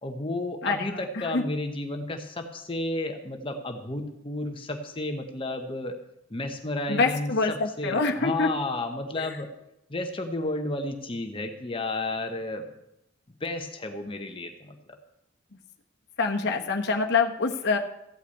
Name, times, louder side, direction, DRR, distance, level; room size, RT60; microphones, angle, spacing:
voice 1, 0.0-6.0 6.3-9.5 9.9-12.7 13.4-15.0, left 2 dB, 25° left, 5 dB, 0.9 m, -32 dB
voice 2, 0.6-1.4 6.9-8.5 16.2-17.8, left 4 dB, 55° left, 3 dB, 1.1 m, -25 dB
14.5 x 5.7 x 8.4 m, 0.85 s
head